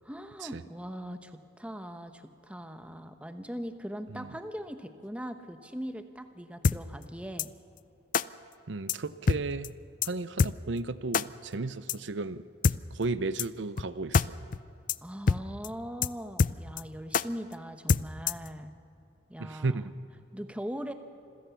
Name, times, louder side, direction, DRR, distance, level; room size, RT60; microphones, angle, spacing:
voice 1, 0.0-7.5 15.0-18.7 19.3-19.9 20.3-20.9, equal, 5° right, 8 dB, 1.0 m, -40 dB
sound 1, 6.6-6.8 7.4-7.5 8.1-8.2 8.9-9.0 9.3-9.4 9.6-9.7 10.0-10.1 10.4-10.5 11.1-11.2 11.9-12.0 12.6-12.8 13.4-13.5 13.8-13.9 14.1-14.3 14.5-14.6 14.9-15.0 15.3-15.4 15.6-15.7 16.0-16.1 16.4-16.8 17.1-17.2 17.9-18.5, left 5 dB, 45° left, 0.4 m, -24 dB
voice 2, 8.7-9.7 10.0-12.4 12.9-14.4 19.4-19.9, right 3 dB, 75° right, 14 dB, 0.7 m, -34 dB
26.5 x 16.0 x 7.0 m, 2.8 s
head